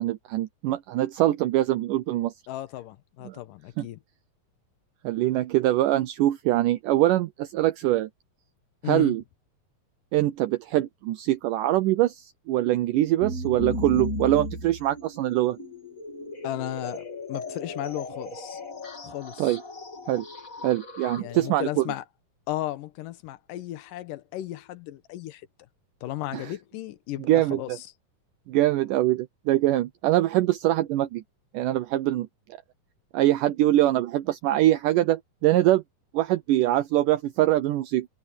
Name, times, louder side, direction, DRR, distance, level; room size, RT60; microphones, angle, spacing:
voice 1, 0.0-2.3 3.2-3.4 3.8-3.9 5.0-8.1 8.8-9.2 10.1-15.6 19.4-19.6 20.1-20.3 20.6-21.9 26.3-26.5 27.2-27.8 28.5-31.2 31.5-32.6 33.1-35.8 36.1-38.1, right 14 dB, 75° right, 2.2 m, -23 dB
voice 2, 2.5-4.0 8.8-9.2 16.4-18.6 19.0-19.5 21.2-22.0 22.5-25.5 26.0-27.8, left 14 dB, 75° left, 2.5 m, -35 dB
sound 1, 13.2-21.8, left 1 dB, 25° left, 3.3 m, -36 dB
omnidirectional pair, 4.0 m